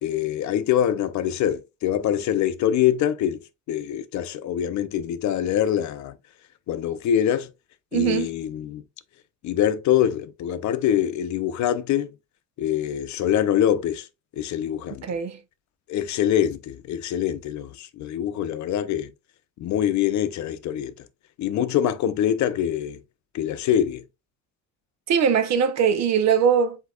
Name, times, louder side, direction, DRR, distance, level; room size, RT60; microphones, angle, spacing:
voice 1, 0.0-3.4 3.7-6.2 6.7-7.5 7.9-8.8 9.4-12.1 12.6-14.1 14.4-15.0 15.9-19.1 19.6-20.9 21.4-23.0 23.3-24.0, left 10 dB, 70° left, 0.6 m, -24 dB
voice 2, 7.9-8.3 15.0-15.4 25.1-26.8, right 7 dB, 65° right, 0.8 m, -21 dB
7.9 x 2.8 x 2.3 m
cardioid pair, 155°, 30 cm